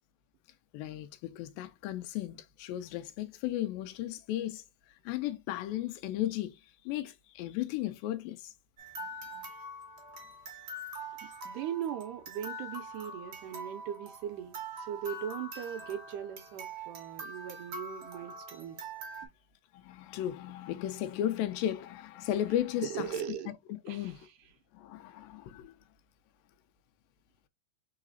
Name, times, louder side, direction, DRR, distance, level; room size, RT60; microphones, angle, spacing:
voice 1, 0.7-6.6 6.9-8.5 19.7-23.1 23.7-24.3 24.7-25.8, left 12 dB, 85° left, 2.3 m, -35 dB
sound 1, 8.8-19.3, right 1 dB, 50° right, 1.2 m, -44 dB
voice 2, 11.5-18.9 22.8-23.5 23.9-24.3, right 9 dB, 80° right, 1.9 m, -39 dB
4.8 x 3.9 x 2.5 m
omnidirectional pair, 4.0 m